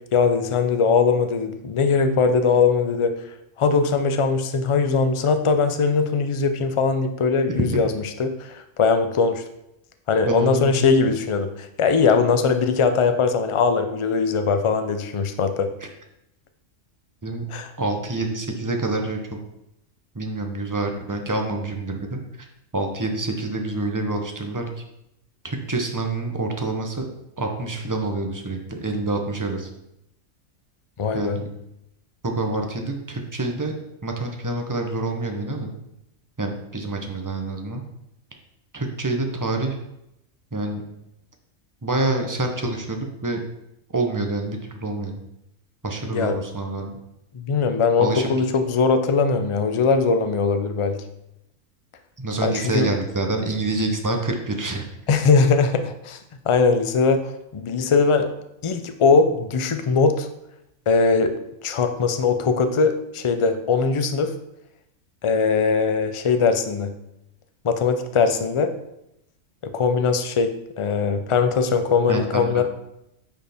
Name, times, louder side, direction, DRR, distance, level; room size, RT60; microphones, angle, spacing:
voice 1, 0.1-3.1 3.6-7.9 8.2-9.4 10.1-15.7 17.5-17.7 31.0-31.4 46.1-46.3 47.3-51.0 52.4-52.9 55.1-56.2 56.5-57.2 57.5-58.3 58.6-60.3 60.9-61.3 61.6-64.3 65.2-66.9 67.6-68.7 69.7-70.5 70.8-72.6, left 5 dB, 45° left, 8 dB, 0.4 m, -20 dB
voice 2, 10.3-11.1 17.2-17.4 17.8-19.4 20.1-22.2 22.7-24.7 25.4-27.1 27.4-29.7 31.1-31.5 32.2-33.7 34.0-35.7 36.4-37.8 38.7-39.8 40.5-40.8 41.8-43.4 43.9-45.2 45.8-46.9 48.0-48.3 52.2-54.8 72.1-72.6, right 2 dB, 20° right, 3 dB, 0.6 m, -27 dB
9.3 x 4.5 x 3.5 m, 0.83 s
omnidirectional pair, 1.3 m